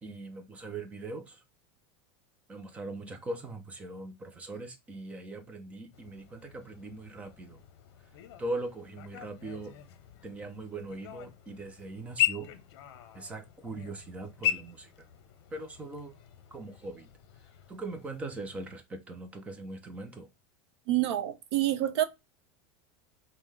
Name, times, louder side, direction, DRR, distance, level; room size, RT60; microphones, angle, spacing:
voice 1, 0.0-1.4 2.5-7.6 8.4-9.7 10.2-12.5 13.1-14.9 15.5-16.1 16.5-17.1 17.7-20.3, right 2 dB, 10° right, 0.4 m, -40 dB
sound 1, 5.9-18.8, left 13 dB, 65° left, 0.8 m, -39 dB
voice 2, 20.9-22.0, right 13 dB, 85° right, 0.7 m, -27 dB
5.4 x 2.2 x 3.2 m
supercardioid pair, 180°, 14 cm